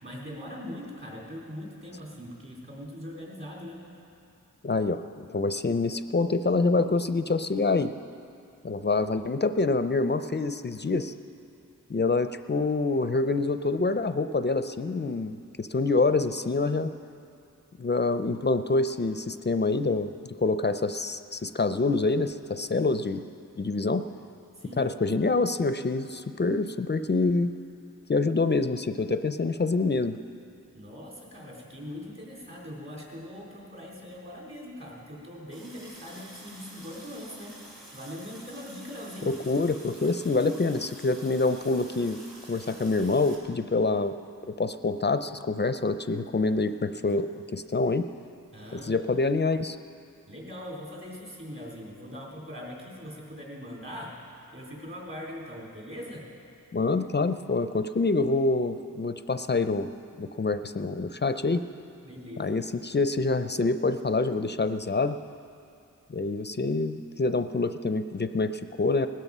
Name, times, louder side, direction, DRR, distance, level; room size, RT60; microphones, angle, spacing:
voice 1, 0.0-3.8 24.6-24.8 30.7-39.4 48.5-49.0 50.3-54.1 54.5-56.3 62.0-62.5, equal, 40° right, -3 dB, 3.9 m, -41 dB
voice 2, 4.6-7.9 8.6-11.1 11.9-15.3 15.6-16.9 17.8-23.2 23.6-24.1 24.8-27.5 28.1-30.2 39.2-42.2 42.5-44.1 44.4-48.1 48.7-49.8 56.7-59.9 60.2-61.6 62.4-65.2 66.1-69.1, left 3 dB, 35° left, 10 dB, 0.5 m, -26 dB
Water tap faucet, 35.5-43.3, right 1 dB, 65° right, 3.8 m, -49 dB
19.0 x 13.0 x 5.5 m, 2.6 s
wide cardioid pair, 100°, 31 cm